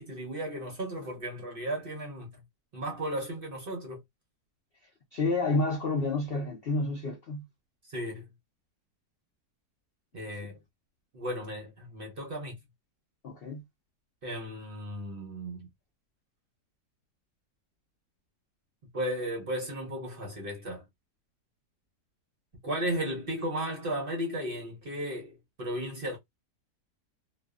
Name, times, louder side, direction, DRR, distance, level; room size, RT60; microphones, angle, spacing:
voice 1, 0.0-2.4 2.7-4.0 7.9-8.3 10.1-10.6 11.1-12.6 14.2-15.7 18.9-20.8 22.6-26.2, right 1 dB, 50° right, 0.7 m, -35 dB
voice 2, 5.1-7.4 13.2-13.6, left 2 dB, 80° left, 0.5 m, -29 dB
2.5 x 2.3 x 2.3 m
omnidirectional pair, 1.8 m